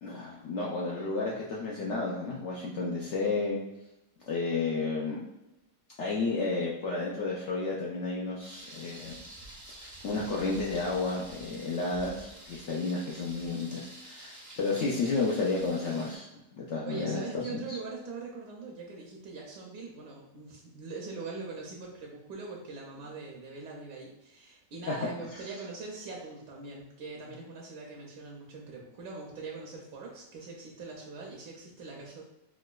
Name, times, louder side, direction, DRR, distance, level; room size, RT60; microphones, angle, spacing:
voice 1, 0.0-3.6 4.3-5.2 6.0-9.2 9.8-16.3 16.5-17.8 24.9-25.0 25.3-25.4, left 3 dB, 85° left, -4 dB, 0.6 m, -32 dB
Thunder, 8.4-16.2, right 1 dB, 30° right, 0.3 m, -48 dB
voice 2, 16.9-32.2, right 4 dB, 80° right, -2 dB, 1.3 m, -42 dB
4.7 x 2.2 x 2.3 m, 0.94 s
omnidirectional pair, 1.8 m